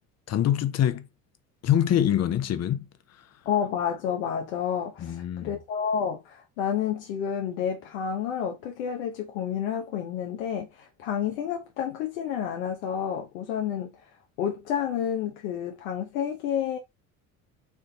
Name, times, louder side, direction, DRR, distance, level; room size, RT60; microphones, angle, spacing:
voice 1, 0.3-1.1 1.6-2.8 5.0-5.5, left 10 dB, 40° left, 0.7 m, -24 dB
voice 2, 3.5-14.1 14.4-16.8, left 8 dB, 85° left, 0.9 m, -30 dB
4.8 x 2.6 x 3.8 m
hypercardioid pair, 75°, 39 cm